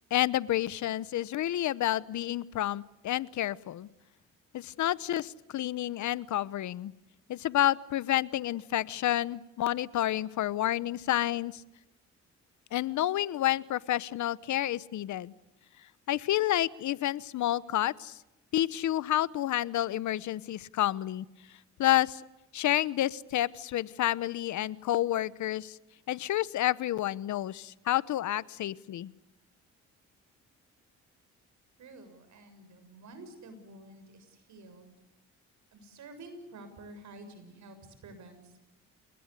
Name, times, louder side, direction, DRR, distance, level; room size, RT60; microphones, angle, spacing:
voice 1, 0.1-3.9 4.5-6.9 7.3-11.6 12.7-15.3 16.1-18.2 18.5-21.2 21.8-22.2 22.5-25.8 26.1-29.1, left 13 dB, 70° left, 19 dB, 1.0 m, -29 dB
voice 2, 31.8-35.0 35.7-38.6, right 2 dB, 70° right, 9 dB, 7.0 m, -50 dB
29.0 x 20.0 x 8.3 m, 0.94 s
cardioid pair, 90°, 30 cm